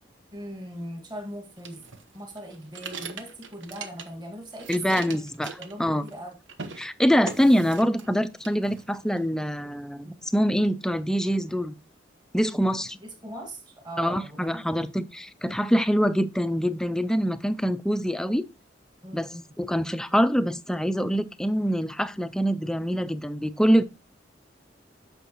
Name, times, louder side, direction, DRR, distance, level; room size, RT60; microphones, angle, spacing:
voice 1, 0.3-1.8 2.1-5.1 5.6-6.3 13.0-14.9 19.0-19.5, equal, 25° right, 1.8 m, -40 dB
sound 1, 1.6-4.3 4.5-6.2 6.5-6.8 7.3-8.1 8.4-9.2, right 5 dB, 90° right, 1.0 m, -40 dB
voice 2, 4.7-6.0 6.8-11.7 12.3-13.0 14.0-18.5 19.1-19.3 19.6-23.8, equal, 5° left, 0.4 m, -24 dB
9.0 x 6.3 x 3.0 m
head